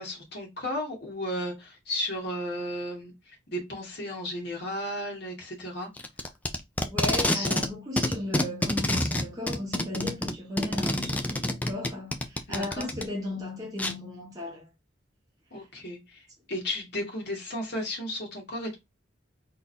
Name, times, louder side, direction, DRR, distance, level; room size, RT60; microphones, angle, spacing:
voice 1, 0.0-5.9 7.3-7.5 12.5-12.9 15.5-18.7, left 1 dB, 55° left, 2.0 m, -34 dB
Packing tape duct tape, 6.0-7.7 8.0-13.0 13.8-13.9, left 1 dB, 10° left, 0.5 m, -27 dB
voice 2, 6.8-14.7, left 1 dB, 20° right, 1.1 m, -36 dB
4.1 x 3.7 x 2.7 m
head